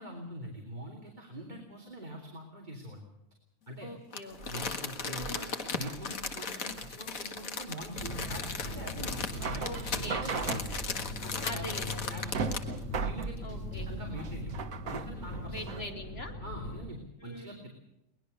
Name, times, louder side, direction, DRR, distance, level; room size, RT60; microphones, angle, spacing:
voice 1, 0.0-3.0 3.7-3.9 4.4-5.5 5.8-10.7 11.2-11.7 12.1-12.6 12.9-13.4 13.7-14.6 14.9-15.8 16.4-17.7, equal, 35° right, 0 dB, 3.2 m, -43 dB
voice 2, 3.8-4.6 5.1-5.6 9.6-10.3 11.4-12.3 13.4-13.9 15.5-16.4 17.2-17.6, left 1 dB, 45° left, 3 dB, 3.3 m, -43 dB
Crumpling crinkling, 4.1-12.8 13.2-13.3, left 5 dB, 90° left, 2.1 m, -37 dB
sound 1, 4.3-15.9, right 5 dB, 85° right, 1.6 m, -39 dB
sound 2, 7.9-16.9, left 1 dB, 70° left, 6.4 m, -40 dB
22.5 x 20.0 x 6.8 m, 0.87 s
omnidirectional pair, 1.4 m